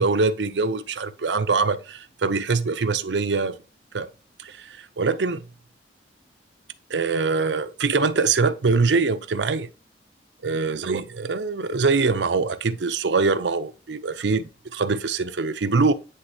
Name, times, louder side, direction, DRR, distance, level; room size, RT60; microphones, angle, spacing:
voice 1, 0.0-3.6 3.9-4.1 4.4-5.4 6.9-9.7 10.4-15.9, right 4 dB, 75° right, 0.6 m, -23 dB
9.7 x 3.4 x 2.8 m
head